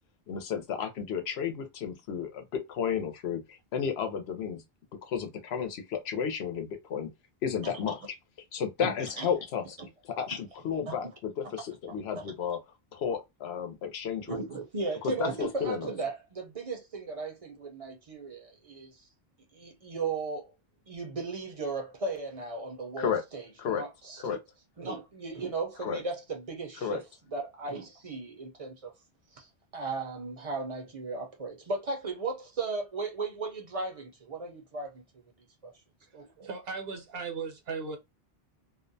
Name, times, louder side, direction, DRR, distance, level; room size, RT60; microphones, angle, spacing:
voice 1, 0.3-4.6 5.0-7.1 7.4-8.0 8.5-9.8 10.2-12.6 12.9-14.4 15.2-15.9 23.0-23.2 23.6-23.8 24.2-24.4 25.8-26.0 26.8-27.0, left 7 dB, 85° left, 0.9 m, -32 dB
voice 2, 8.8-9.3 9.8-9.9 10.9-11.0 11.4-11.5 12.1-12.3 14.3-19.0 19.5-20.5 20.9-24.4 24.8-27.0 27.3-28.9 29.3-35.0 35.6-35.7 36.1-36.5, right 3 dB, 40° right, 0.6 m, -36 dB
voice 3, 36.4-38.0, right 4 dB, 75° right, 1.0 m, -37 dB
2.5 x 2.1 x 2.5 m
omnidirectional pair, 1.0 m